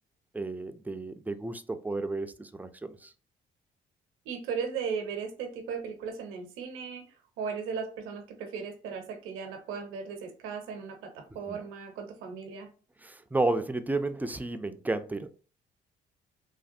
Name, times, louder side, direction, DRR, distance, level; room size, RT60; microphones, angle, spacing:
voice 1, 0.3-3.1 11.5-11.6 13.0-15.3, right 2 dB, 10° right, 0.4 m, -32 dB
voice 2, 4.2-12.7, right 6 dB, 75° right, 0.7 m, -37 dB
3.2 x 2.3 x 2.6 m
hypercardioid pair, 55°, 21 cm